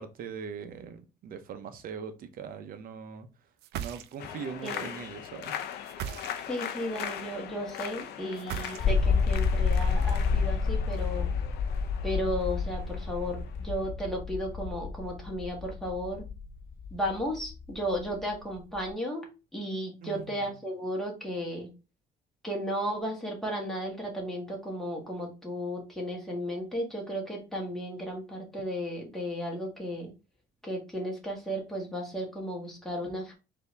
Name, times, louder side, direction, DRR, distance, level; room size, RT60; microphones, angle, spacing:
voice 1, 0.0-3.3 3.7-5.6 20.0-20.5, right 6 dB, 60° right, 0.8 m, -41 dB
sound 1, 3.6-4.4 5.8-6.7 8.4-9.2, right 10 dB, 80° right, 0.4 m, -38 dB
sound 2, 4.2-13.9, left 9 dB, 75° left, 0.6 m, -40 dB
voice 2, 6.5-11.3 12.0-16.2 16.9-19.3 19.5-21.7 22.4-30.1 30.6-33.3, equal, ahead, 1.7 m, -34 dB
sound 3, 8.8-18.9, left 5 dB, 35° left, 0.4 m, -29 dB
4.4 x 2.8 x 3.3 m
cardioid pair, 110°, 17 cm